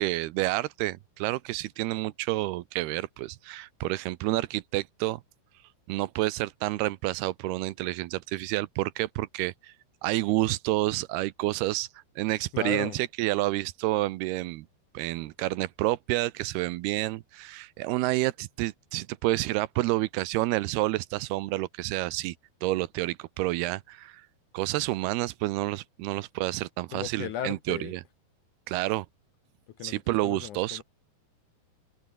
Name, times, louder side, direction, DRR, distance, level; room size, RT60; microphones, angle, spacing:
voice 1, 0.0-5.2 5.9-9.7 10.0-11.9 12.2-14.7 14.9-22.3 22.6-24.2 24.5-28.0 28.7-29.1 29.8-30.8, right 18 dB, 85° right, 2.7 m, -29 dB
voice 2, 12.5-13.0 26.9-27.9 29.8-30.8, left 10 dB, 65° left, 2.1 m, -36 dB
open air
omnidirectional pair, 4.6 m